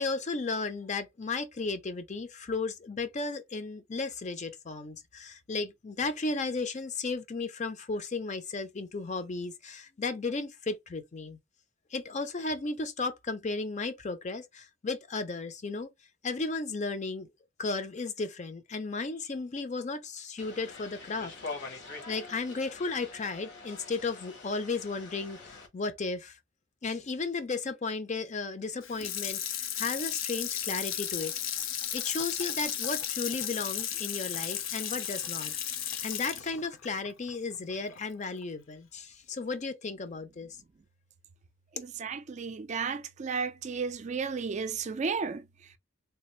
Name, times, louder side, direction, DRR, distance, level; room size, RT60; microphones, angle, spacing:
voice 1, 0.0-11.4 11.9-15.9 16.2-17.3 17.6-21.3 21.6-26.4 26.8-31.3 31.9-35.5 36.0-40.6, left 3 dB, 35° left, 0.6 m, -34 dB
sound 1, 20.4-25.7, left 3 dB, 60° left, 1.1 m, -44 dB
Water tap faucet / Sink (filling or washing), 28.8-38.0 38.4-38.5, left 10 dB, 80° left, 0.6 m, -34 dB
voice 2, 41.7-45.8, right 5 dB, 35° right, 0.4 m, -34 dB
3.4 x 2.4 x 3.1 m
head